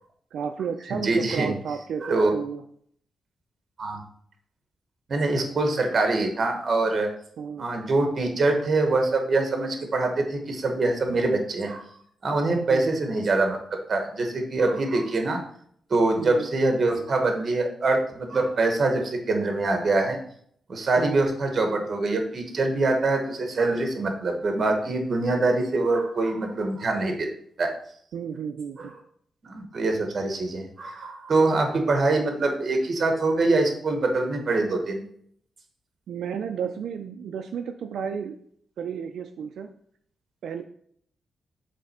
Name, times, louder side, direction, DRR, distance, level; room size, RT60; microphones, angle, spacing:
voice 1, 0.3-2.6 7.4-7.7 12.7-13.0 16.2-16.5 21.0-21.3 28.1-28.9 36.1-38.4 38.8-39.7 40.4-40.6, right 7 dB, 75° right, 6 dB, 0.4 m, -32 dB
voice 2, 0.9-1.6 2.0-2.3 3.8-4.0 5.1-7.1 7.6-11.8 12.2-13.6 13.9-15.4 15.9-20.2 20.7-27.3 27.6-27.7 28.8-28.9 29.4-35.0, right 2 dB, 35° right, 4 dB, 1.1 m, -24 dB
7.5 x 3.3 x 4.2 m, 0.63 s
wide cardioid pair, 170°, 0 cm